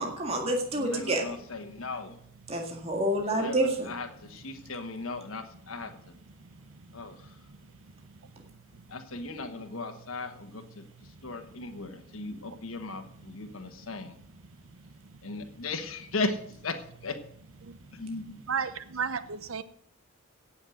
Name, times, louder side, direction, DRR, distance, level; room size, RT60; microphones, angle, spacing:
voice 1, 0.0-1.2 2.5-3.9, right 1 dB, 30° right, 1 dB, 1.9 m, -28 dB
voice 2, 0.8-2.1 3.2-5.9 6.9-7.3 8.9-10.8 11.2-14.1 15.2-17.2 17.9-18.4, left 3 dB, 85° left, 5 dB, 1.3 m, -37 dB
voice 3, 18.5-19.6, right 6 dB, 90° right, 13 dB, 0.9 m, -32 dB
17.0 x 6.4 x 6.4 m, 0.66 s
head